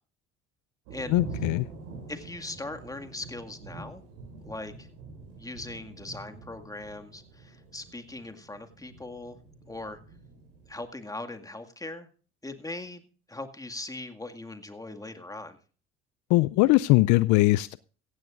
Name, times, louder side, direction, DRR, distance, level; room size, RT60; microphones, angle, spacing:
sound 1, 0.9-10.8, right 3 dB, 75° right, 7.4 m, -44 dB
voice 1, 1.1-1.6 16.3-17.8, left 20 dB, 60° left, 18 dB, 0.5 m, -21 dB
voice 2, 2.1-4.0 4.5-4.9 5.4-9.4 9.7-10.0 10.7-12.1 12.4-13.0 13.3-15.6, left 2 dB, 10° left, 6 dB, 2.0 m, -40 dB
16.0 x 15.5 x 2.5 m, 0.39 s
hypercardioid pair, 65°, 33 cm